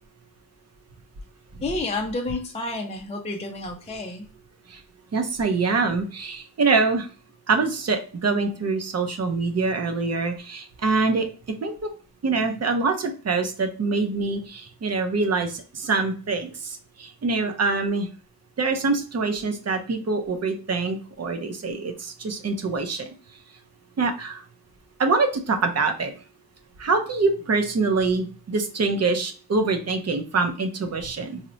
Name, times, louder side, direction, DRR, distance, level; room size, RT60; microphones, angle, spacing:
voice 1, 1.6-4.3, left 2 dB, 20° left, 2 dB, 0.4 m, -30 dB
voice 2, 5.1-7.1 7.5-11.9 12.2-18.1 18.6-23.1 24.0-24.4 25.0-26.1 26.8-31.4, right 4 dB, 40° right, 6 dB, 0.6 m, -25 dB
4.2 x 2.1 x 2.5 m, 0.37 s
wide cardioid pair, 125°, 39 cm